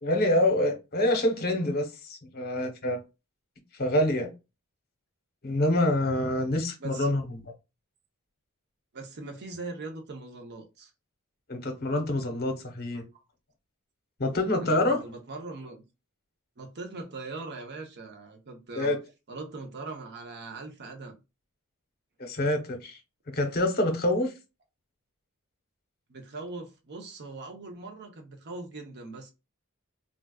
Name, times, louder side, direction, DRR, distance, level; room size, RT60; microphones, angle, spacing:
voice 1, 0.0-3.0 3.7-4.3 5.4-7.2 11.5-13.0 14.2-15.0 18.7-19.0 22.2-23.0 23.3-24.3, left 1 dB, 45° left, 0.9 m, -26 dB
voice 2, 6.8-7.2 8.9-10.9 14.6-15.8 16.6-19.0 19.3-21.2 26.1-29.3, right 3 dB, 50° right, 0.7 m, -41 dB
3.8 x 2.3 x 2.2 m
head